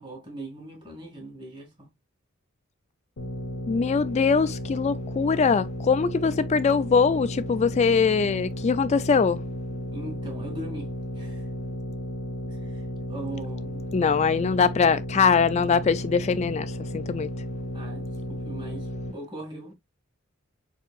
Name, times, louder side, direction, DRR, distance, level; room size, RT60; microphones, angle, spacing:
voice 1, 0.0-1.9 9.9-10.9 11.2-11.5 12.5-14.0 17.7-19.8, right 2 dB, 20° right, 2.2 m, -40 dB
sound 1, 3.2-19.1, left 1 dB, 60° left, 0.8 m, -34 dB
voice 2, 3.7-9.4 13.9-17.3, left 5 dB, 30° left, 0.3 m, -22 dB
4.9 x 4.4 x 2.4 m
head